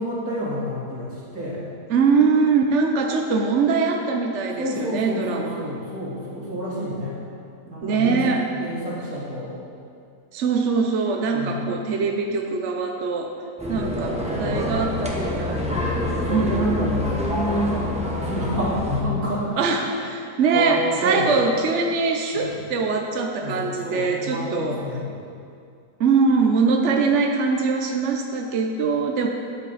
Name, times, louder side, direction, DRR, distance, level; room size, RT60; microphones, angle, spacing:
voice 1, 0.0-1.6 4.6-7.2 7.7-8.3 8.5-9.5 11.2-11.6 13.7-19.9 20.5-21.3 22.3-22.6 23.4-25.2, equal, 75° right, -7 dB, 3.2 m, -29 dB
voice 2, 1.9-5.7 7.8-8.5 10.3-13.4 13.7-15.7 16.3-16.8 19.6-24.8 26.0-29.3, right 4 dB, 60° right, 2 dB, 1.0 m, -22 dB
sound 1, 13.6-19.0, left 1 dB, 5° right, 1.0 m, -27 dB
13.5 x 8.6 x 4.1 m, 2.4 s
omnidirectional pair, 1.6 m